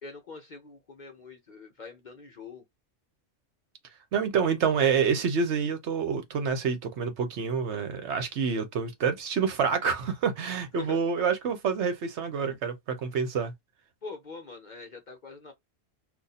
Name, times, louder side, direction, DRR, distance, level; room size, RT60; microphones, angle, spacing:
voice 1, 0.0-2.6 10.7-11.0 14.0-15.5, left 4 dB, 45° left, 0.6 m, -44 dB
voice 2, 4.1-13.5, right 6 dB, 65° right, 0.9 m, -27 dB
2.6 x 2.4 x 4.0 m
omnidirectional pair, 1.3 m